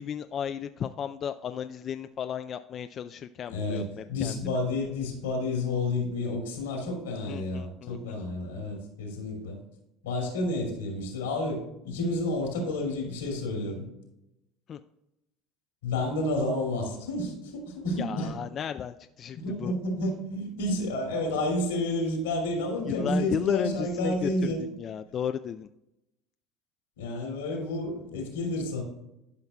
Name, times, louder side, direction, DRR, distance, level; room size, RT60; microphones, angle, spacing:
voice 1, 0.0-4.4 7.3-8.2 14.7-14.8 18.0-19.7 22.9-24.5 24.8-25.7, left 8 dB, 45° left, 8 dB, 0.3 m, -34 dB
voice 2, 3.5-9.6 10.0-13.8 15.8-18.3 19.3-24.6 27.0-28.8, left 1 dB, 90° left, 1 dB, 2.4 m, -30 dB
12.0 x 5.7 x 2.2 m, 0.88 s
hypercardioid pair, 80°, 0 cm